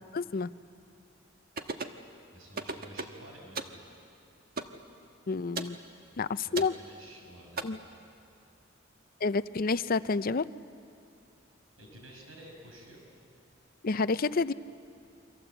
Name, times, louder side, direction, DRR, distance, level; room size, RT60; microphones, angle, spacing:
voice 1, 0.1-0.5 5.3-5.8 6.2-6.7 7.6-7.8 9.2-10.5 13.8-14.5, left 4 dB, 45° left, 15 dB, 0.6 m, -29 dB
sound 1, 1.6-2.0 2.6-3.2 3.6-3.8 4.6-4.8 5.6-5.8 6.6-6.8 7.6-7.7, right 4 dB, 50° right, 1.3 m, -36 dB
voice 2, 2.3-3.8 6.5-7.8 11.8-13.0, right 1 dB, 90° right, 1 dB, 5.7 m, -51 dB
29.0 x 24.5 x 8.0 m, 2.5 s
head